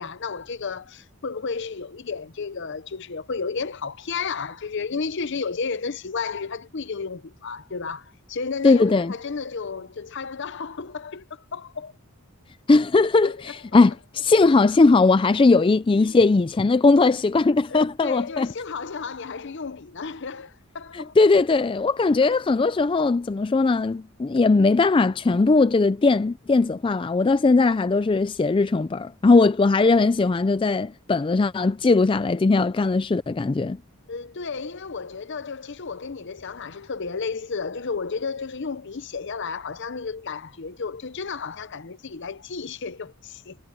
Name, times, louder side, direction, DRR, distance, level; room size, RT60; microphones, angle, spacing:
voice 1, 0.0-11.9 13.2-13.6 15.9-16.2 17.7-21.1 34.1-43.6, left 5 dB, 55° left, 0.7 m, -32 dB
voice 2, 8.6-9.1 12.7-18.5 20.9-33.8, left 3 dB, 25° left, 0.3 m, -19 dB
head